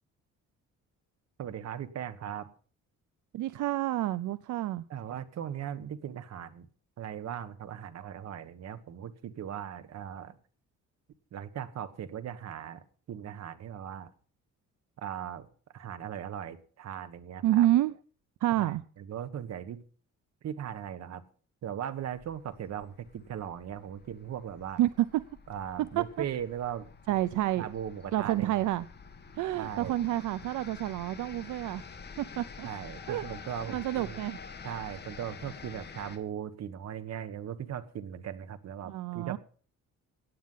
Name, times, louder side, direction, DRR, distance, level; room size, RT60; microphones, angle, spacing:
voice 1, 1.4-2.5 4.9-6.7 7.0-10.3 11.3-14.1 15.0-17.7 18.6-19.8 20.4-21.2 21.6-24.8 25.5-27.2 27.6-28.5 29.6-29.9 32.6-34.2 34.6-39.4, right 9 dB, 60° right, 11 dB, 1.5 m, -39 dB
voice 2, 3.3-4.8 17.4-17.9 18.4-18.8 24.8-25.2 26.0-26.2 27.1-27.7 28.1-28.9 29.3-31.8 32.2-32.7 33.1-33.2 33.7-34.4 38.8-39.4, right 14 dB, 80° right, 15 dB, 0.7 m, -29 dB
sound 1, 22.1-36.2, left 5 dB, 35° left, 2.1 m, -48 dB
17.0 x 9.6 x 5.6 m, 0.43 s
cardioid pair, 135°, 30 cm